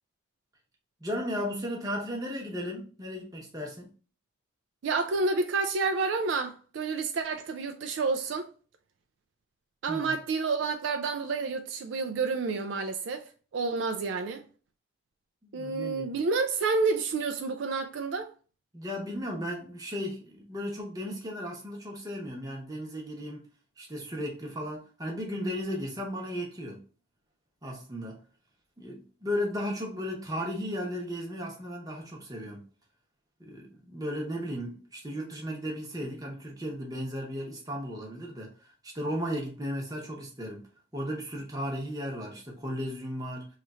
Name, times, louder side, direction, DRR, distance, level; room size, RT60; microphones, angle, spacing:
voice 1, 1.0-3.9 9.9-10.1 15.4-16.1 18.7-23.5 23.8-26.8 27.6-28.2 28.8-32.7 33.4-40.6 40.9-43.5, equal, 20° right, 0.9 m, -35 dB
voice 2, 4.8-8.5 9.8-13.2 13.5-14.5 15.5-18.3, right 4 dB, 65° right, 0.3 m, -29 dB
3.1 x 2.4 x 4.1 m
head